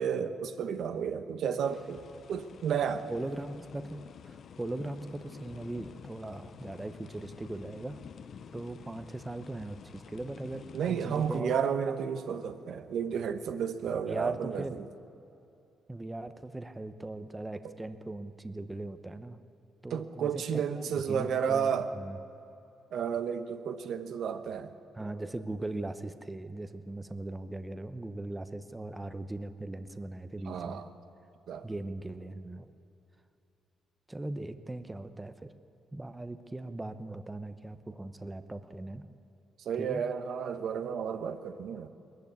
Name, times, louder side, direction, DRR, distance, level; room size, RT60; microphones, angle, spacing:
voice 1, 0.0-2.0 2.3-3.1 10.7-14.9 17.6-17.7 19.9-21.9 22.9-24.7 30.5-30.9 31.5-31.7 39.6-41.9, right 7 dB, 70° right, 9 dB, 1.1 m, -32 dB
sound 1, 1.6-11.4, left 7 dB, 55° left, 0.7 m, -50 dB
voice 2, 3.1-8.0 8.5-11.5 14.0-14.8 15.9-19.4 19.8-22.2 24.9-30.8 31.6-32.7 34.1-35.5 35.9-39.0 39.8-40.0, right 2 dB, 15° right, 10 dB, 0.9 m, -39 dB
20.0 x 14.5 x 9.6 m, 2.7 s
cardioid pair, 90°, 0 cm